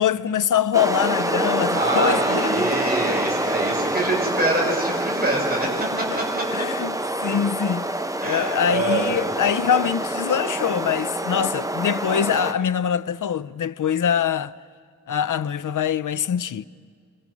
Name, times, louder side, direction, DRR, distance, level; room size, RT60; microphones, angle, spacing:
voice 1, 0.0-2.7 6.1-6.2 6.5-6.9 7.2-7.8 8.2-14.5 15.1-16.7, left 8 dB, 90° left, 0.5 m, -23 dB
sound 1, 0.7-12.5, right 1 dB, 10° right, 1.0 m, -26 dB
voice 2, 1.7-5.7 6.0-6.4 8.2-9.2, right 2 dB, 30° right, 5.6 m, -25 dB
27.0 x 24.5 x 6.2 m
wide cardioid pair, 80°, 30 cm